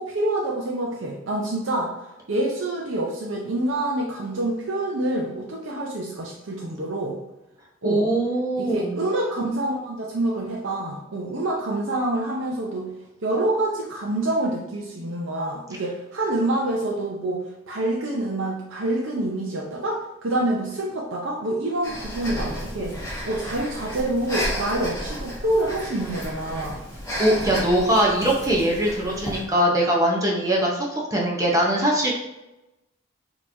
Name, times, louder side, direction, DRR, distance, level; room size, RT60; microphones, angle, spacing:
voice 1, 0.0-1.9 2.3-7.2 7.8-8.0 8.6-12.9 13.2-22.9 23.2-26.8, right 1 dB, 65° right, -2 dB, 0.7 m, -27 dB
voice 2, 7.8-9.0 27.2-32.1, right 1 dB, 15° right, -3 dB, 0.7 m, -22 dB
Breathing, 21.8-29.5, equal, 15° left, 1.2 m, -32 dB
6.3 x 3.0 x 2.7 m, 0.96 s
head